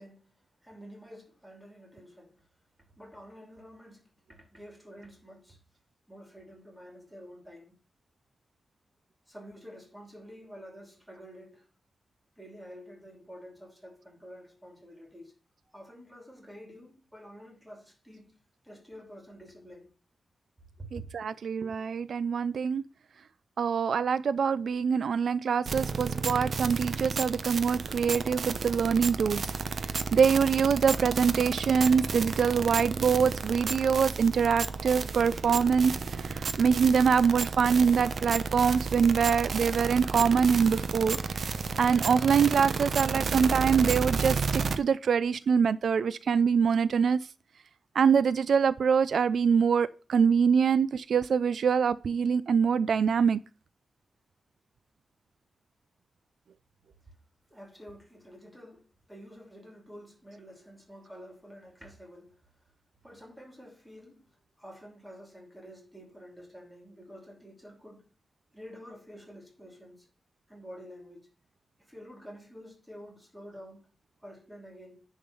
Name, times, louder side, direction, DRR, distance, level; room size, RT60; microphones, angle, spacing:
voice 1, 0.0-2.3 3.0-5.6 6.1-7.8 9.3-11.7 12.3-15.3 15.7-18.3 18.6-19.9 20.8-21.1 57.5-62.7 63.0-68.1 68.5-70.1 70.5-71.3 71.8-73.8 74.2-75.0, equal, 5° right, 2.9 m, -49 dB
voice 2, 20.9-22.8 23.6-29.6 29.8-41.2 41.8-47.2 47.9-53.4, right 6 dB, 75° right, 0.3 m, -24 dB
sound 1, 25.7-44.8, right 5 dB, 60° right, 0.7 m, -32 dB
10.5 x 3.6 x 6.7 m
wide cardioid pair, 140°, 0 cm